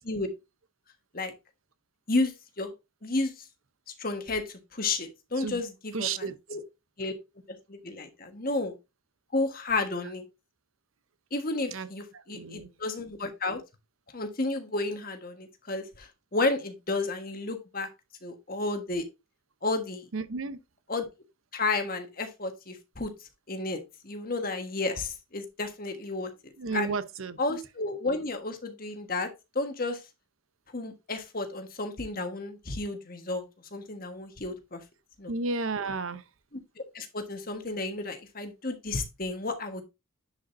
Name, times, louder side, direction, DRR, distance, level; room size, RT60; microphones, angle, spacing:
voice 1, 2.1-2.7 3.0-3.5 4.0-6.6 7.0-7.1 7.5-8.7 9.3-10.2 11.3-13.6 14.1-17.9 18.2-19.0 19.6-20.1 20.9-21.0 21.5-23.1 23.5-27.0 27.4-29.3 29.5-30.0 30.7-33.4 33.7-34.8 35.2-35.3 36.8-39.8, left 2 dB, 40° left, 1.4 m, -32 dB
voice 2, 5.9-6.3 11.7-11.9 12.1-12.7 20.1-20.6 26.6-27.4 35.3-36.2, right 4 dB, 75° right, 0.8 m, -32 dB
10.0 x 5.2 x 2.7 m
head